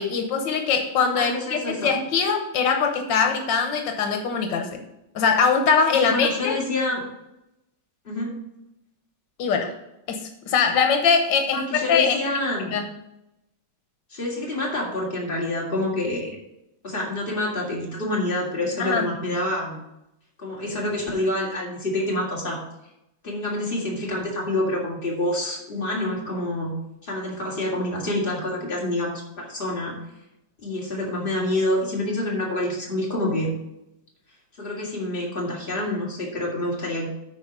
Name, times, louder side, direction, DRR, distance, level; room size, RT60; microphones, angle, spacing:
voice 1, 0.0-4.8 5.1-6.6 9.4-9.7 10.1-12.2 12.7-12.9 18.8-19.1, left 5 dB, 90° left, 5 dB, 1.7 m, -22 dB
voice 2, 1.1-1.9 5.9-7.0 8.0-8.3 11.5-12.8 14.1-16.3 16.8-19.8 20.4-22.6 23.2-26.7 27.0-30.0 30.6-33.5 34.6-37.1, left 1 dB, 30° left, -3 dB, 2.5 m, -27 dB
9.4 x 4.6 x 6.0 m, 0.87 s
omnidirectional pair, 1.9 m